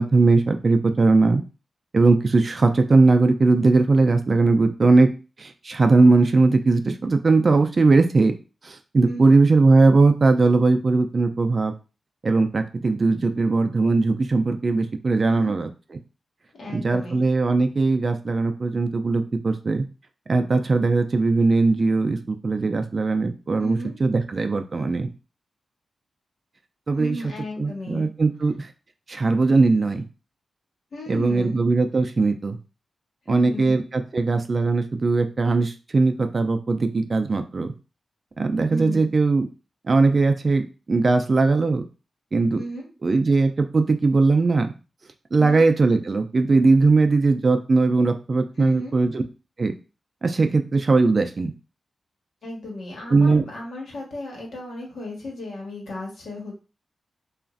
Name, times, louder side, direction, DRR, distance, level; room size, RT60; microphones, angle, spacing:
voice 1, 0.0-1.4 1.9-5.1 5.4-8.3 8.6-11.7 12.2-15.7 16.7-19.8 20.3-25.1 26.9-27.2 27.6-28.7 29.1-30.0 31.1-32.6 33.3-37.7 38.4-39.5 39.9-41.8 42.3-42.6 43.0-44.7 45.3-49.2 49.6-49.7 50.2-51.5 53.1-53.4, right 3 dB, 45° right, 7 dB, 0.3 m, -19 dB
voice 2, 9.0-9.4 15.3-15.6 16.6-17.2 23.6-23.9 27.0-28.1 30.9-31.6 33.3-33.7 38.7-39.1 42.6-42.9 45.4-45.7 48.6-49.0 52.4-56.6, left 1 dB, 80° left, -1 dB, 1.2 m, -34 dB
3.0 x 2.4 x 2.4 m, 0.32 s
wide cardioid pair, 90°, 0 cm